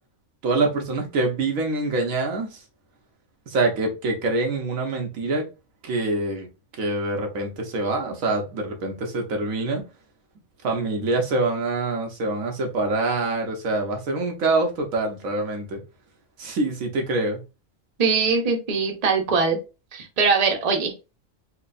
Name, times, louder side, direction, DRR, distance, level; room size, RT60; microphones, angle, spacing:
voice 1, 0.4-2.6 3.5-5.5 5.8-6.5 6.8-9.8 10.6-15.8 16.4-17.4, right 2 dB, 85° right, 1.4 m, -25 dB
voice 2, 18.0-19.6 19.9-20.9, right 5 dB, 35° right, 0.8 m, -21 dB
4.4 x 3.0 x 2.5 m
omnidirectional pair, 1.4 m